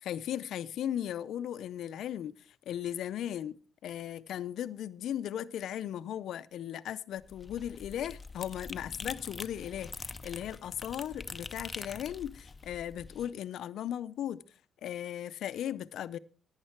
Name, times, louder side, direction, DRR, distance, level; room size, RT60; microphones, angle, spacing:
voice 1, 0.0-3.6 3.8-14.4 14.8-16.2, left 10 dB, 75° left, 0.5 m, -37 dB
sound 1, 7.2-13.3, left 3 dB, 25° left, 0.6 m, -44 dB
11.0 x 9.5 x 4.5 m
cardioid pair, 90°, 0 cm